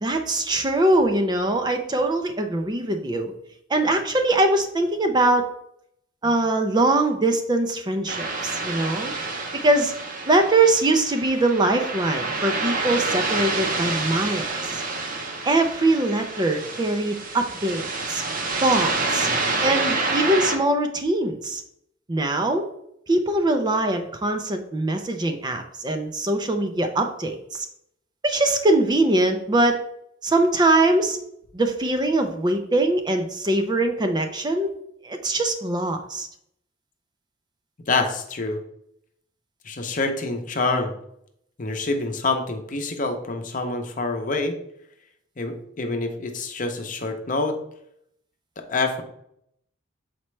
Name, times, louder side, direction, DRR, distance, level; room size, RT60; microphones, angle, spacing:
voice 1, 0.0-3.3 3.7-5.4 6.2-9.1 9.6-9.9 10.3-14.8 15.4-18.2 18.6-19.3 19.6-21.6 22.1-22.7 23.1-27.7 28.2-29.8 30.2-31.2 31.5-34.7 35.0-36.3, right 2 dB, 20° right, 5 dB, 0.5 m, -22 dB
sound 1, 8.1-20.6, right 3 dB, 45° right, 0.8 m, -28 dB
voice 2, 37.9-38.6 39.6-40.9 41.6-44.6 45.4-47.6 48.6-49.0, left 3 dB, 40° left, 5 dB, 0.8 m, -26 dB
7.1 x 4.3 x 3.2 m, 0.73 s
head